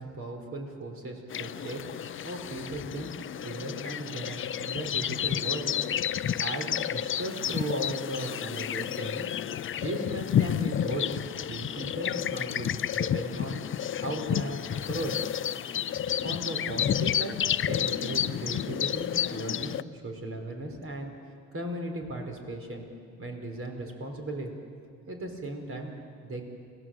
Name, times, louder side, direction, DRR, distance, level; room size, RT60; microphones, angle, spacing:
voice 1, 0.0-3.1 3.4-5.7 6.4-9.3 9.8-13.6 14.0-15.2 16.2-17.4 17.6-21.1 21.5-22.9 23.2-24.5 25.1-25.9 26.2-26.4, right 1 dB, 45° right, 3 dB, 4.6 m, -36 dB
sound 1, 1.3-19.8, left 10 dB, 45° left, 0.5 m, -31 dB
27.5 x 17.5 x 7.9 m, 2.3 s
cardioid pair, 90°, 30 cm